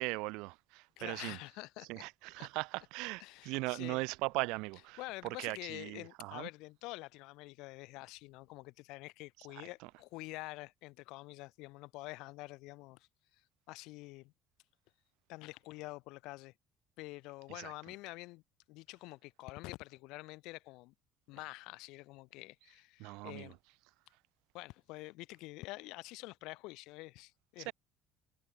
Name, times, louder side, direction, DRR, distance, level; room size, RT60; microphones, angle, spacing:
voice 1, 0.0-1.4 1.9-6.5 9.8-9.9 17.5-17.7 23.0-23.5 27.6-27.7, right 25 dB, 80° right, 2.5 m, -39 dB
voice 2, 1.0-2.0 2.4-2.5 3.2-4.0 5.0-13.1 13.7-14.3 15.3-16.5 17.0-18.4 18.7-20.9 21.3-23.6 24.5-27.7, left 22 dB, 70° left, 2.6 m, -47 dB
cardioid pair, 170°, 0 cm